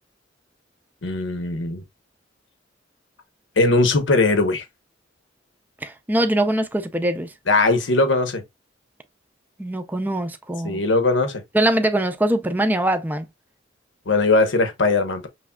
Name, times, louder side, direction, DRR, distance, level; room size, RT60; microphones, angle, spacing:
voice 1, 1.0-1.8 3.6-4.6 7.5-8.4 10.6-11.4 14.1-15.3, left 3 dB, 75° left, 1.0 m, -19 dB
voice 2, 5.8-7.3 9.6-10.8 11.5-13.2, right 1 dB, 10° right, 0.5 m, -22 dB
5.7 x 3.2 x 2.3 m
head